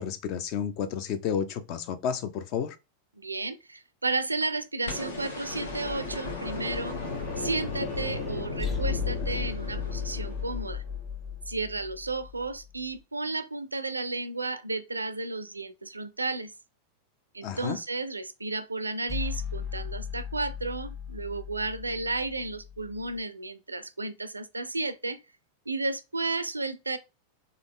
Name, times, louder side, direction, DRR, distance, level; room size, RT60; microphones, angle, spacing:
voice 1, 0.0-2.8 17.4-17.8, left 7 dB, 40° left, 0.5 m, -31 dB
voice 2, 3.2-7.0 7.4-10.8 11.5-16.5 17.3-25.2 25.7-27.0, right 3 dB, 80° right, 0.4 m, -33 dB
sound 1, 4.9-11.0 12.6-12.7, left 3 dB, 65° left, 1.0 m, -36 dB
sound 2, 5.7-12.8 19.1-23.2, left 6 dB, 15° left, 1.3 m, -37 dB
3.8 x 2.7 x 3.5 m
figure-of-eight pair, 90°, 0 cm